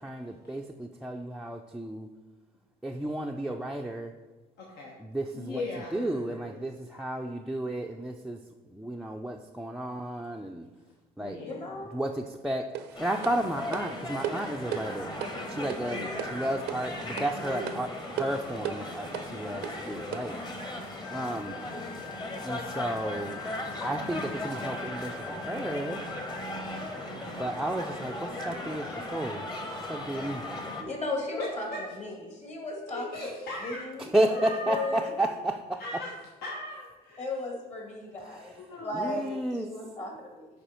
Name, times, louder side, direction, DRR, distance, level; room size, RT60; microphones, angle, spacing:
voice 1, 0.0-2.1 2.8-4.1 5.0-5.6 5.9-8.4 8.7-10.7 11.2-11.4 11.9-15.1 15.5-20.4 21.1-21.6 22.4-23.4 23.8-26.0 27.2-29.5 29.9-30.4 34.0-35.8 38.3-38.5 38.9-39.7, right 1 dB, 5° right, 3 dB, 0.4 m, -32 dB
voice 2, 4.6-4.9 5.3-6.6 11.2-11.5 17.6-17.8 31.4-31.8 32.9-33.8 34.3-34.9 35.8-36.1 36.4-37.2 38.7-39.1, left 2 dB, 75° left, -3 dB, 1.3 m, -38 dB
voice 3, 11.4-11.9 30.7-33.2 33.6-35.2 37.2-40.5, left 2 dB, 40° left, 1 dB, 2.0 m, -36 dB
sound 1, 12.7-20.4, right 10 dB, 80° right, 0.6 m, -38 dB
sound 2, 12.9-30.8, left 1 dB, 25° left, 1.2 m, -37 dB
sound 3, 21.0-27.1, left 7 dB, 90° left, 1.4 m, -45 dB
10.5 x 4.1 x 4.4 m, 1.2 s
cardioid pair, 110°, 17 cm